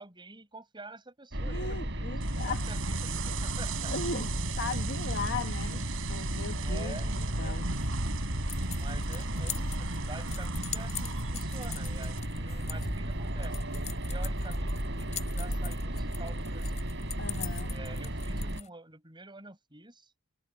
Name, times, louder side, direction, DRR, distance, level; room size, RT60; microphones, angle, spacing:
voice 1, 0.0-3.9 5.6-5.8 6.6-7.6 8.7-13.6 14.1-16.9 17.7-20.1, right 2 dB, 25° right, 6.5 m, -48 dB
sound 1, 1.3-18.6, right 1 dB, 60° right, 7.0 m, -35 dB
voice 2, 1.4-2.7 3.9-4.3 4.6-5.8 6.1-7.0 7.4-7.7 17.2-17.8, left 4 dB, 55° left, 1.6 m, -37 dB
sound 2, 2.2-12.2, right 2 dB, 75° right, 4.7 m, -36 dB
sound 3, 8.5-18.7, left 7 dB, 35° left, 3.6 m, -43 dB
head